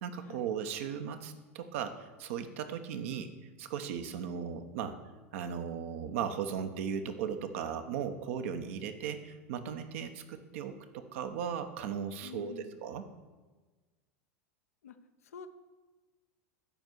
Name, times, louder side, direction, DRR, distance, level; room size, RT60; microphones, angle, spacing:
voice 1, 0.0-3.3 3.6-5.0 5.3-13.1, right 7 dB, 65° right, 7 dB, 1.0 m, -37 dB
voice 2, 2.9-3.3 12.2-12.8 14.8-15.0 15.2-15.5, left 7 dB, 80° left, 8 dB, 0.8 m, -48 dB
10.5 x 4.4 x 7.9 m, 1.3 s
hypercardioid pair, 90°, 8 cm